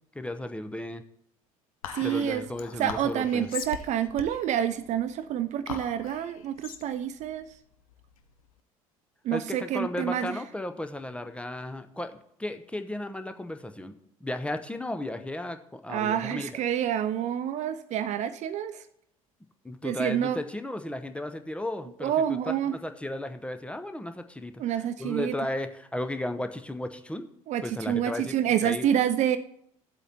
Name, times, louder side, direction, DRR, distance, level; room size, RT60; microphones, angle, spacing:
voice 1, 0.1-1.0 2.0-3.5 9.3-16.6 19.6-22.1 22.5-27.3 27.6-28.9, left 1 dB, 5° left, 8 dB, 0.7 m, -35 dB
Whispering, 1.8-8.5, left 8 dB, 75° left, 0.7 m, -41 dB
voice 2, 1.9-2.4 2.8-7.5 9.2-10.4 15.9-18.8 19.8-20.4 22.0-22.8 24.6-25.3 27.5-29.4, right 10 dB, 40° right, 12 dB, 0.5 m, -28 dB
14.5 x 8.0 x 2.9 m, 0.72 s
figure-of-eight pair, 60°, 18 cm